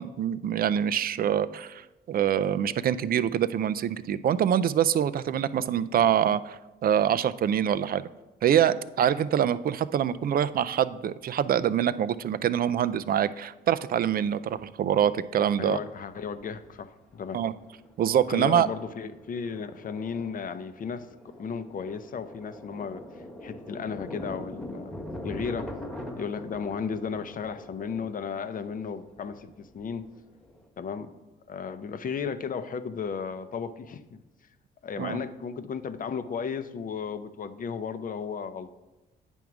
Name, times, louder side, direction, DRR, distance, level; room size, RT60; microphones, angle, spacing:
voice 1, 0.0-8.1 8.4-15.8 17.3-17.5 18.0-18.7 35.0-35.2, right 9 dB, 50° right, 14 dB, 0.4 m, -25 dB
Thunder, 14.6-14.7 16.0-16.8 17.1-17.2 17.6-17.9 18.2-30.6, left 1 dB, 5° left, 1.3 m, -42 dB
voice 2, 15.6-17.4 18.3-21.1 21.4-23.0 23.4-25.7 26.1-30.1 30.8-31.2 31.5-34.2 34.8-38.7, left 6 dB, 45° left, 11 dB, 0.6 m, -34 dB
9.1 x 3.6 x 6.0 m, 1.1 s
cardioid pair, 90°, 20 cm